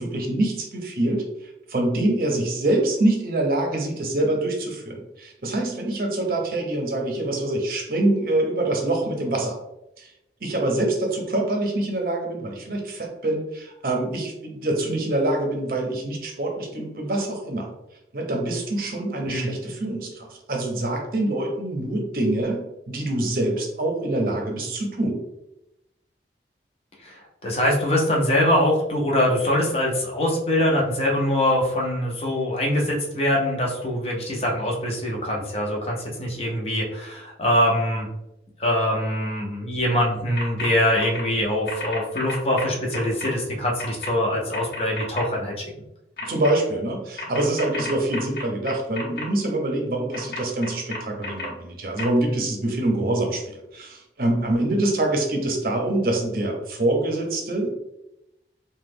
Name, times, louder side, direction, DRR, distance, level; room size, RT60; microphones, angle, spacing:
voice 1, 0.0-9.6 10.0-10.1 10.4-17.7 18.1-22.6 22.9-25.2 46.2-57.7, right 1 dB, 55° right, 2 dB, 0.6 m, -25 dB
voice 2, 27.0-38.1 38.6-45.6, left 1 dB, 35° left, -1 dB, 0.6 m, -23 dB
sound 1, 40.4-40.7 41.0-41.2 41.7-43.3 43.8-44.1 44.5-45.2 46.2-46.5 47.2-49.2 50.1-51.5 52.0-52.1, left 3 dB, 60° left, 0.9 m, -32 dB
3.0 x 2.2 x 3.4 m, 0.89 s
head